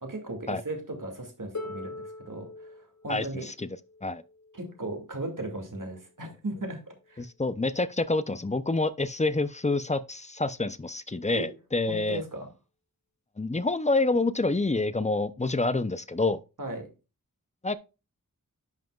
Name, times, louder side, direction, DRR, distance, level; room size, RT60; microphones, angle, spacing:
voice 1, 0.0-2.7 3.0-3.5 4.5-7.2 11.3-11.5 11.9-12.5 16.6-16.9, right 2 dB, 65° right, 2.3 m, -37 dB
Harp, 1.5-7.3 8.4-8.5, left 2 dB, 55° left, 1.8 m, -45 dB
voice 2, 3.1-3.7 4.0-4.2 7.2-12.2 13.4-16.4 17.6-17.8, left 2 dB, 20° left, 0.6 m, -27 dB
10.5 x 5.8 x 2.4 m
wide cardioid pair, 60°, 34 cm